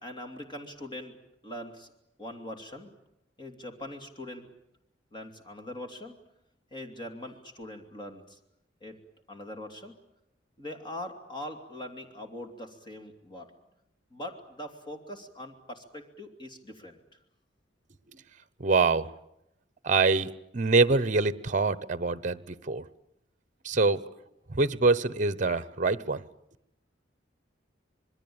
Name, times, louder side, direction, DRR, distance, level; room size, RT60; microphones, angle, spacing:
voice 1, 0.0-1.2 1.4-1.9 2.2-2.9 3.4-4.5 5.1-6.2 6.7-8.4 8.8-9.0 9.3-9.9 10.6-13.5 14.1-17.0, left 1 dB, 25° left, 5 dB, 2.9 m, -42 dB
voice 2, 18.6-19.1 19.8-22.4 22.7-22.8 23.6-24.0 24.5-26.2, right 3 dB, 45° right, 17 dB, 0.9 m, -24 dB
26.5 x 21.0 x 8.8 m, 0.83 s
head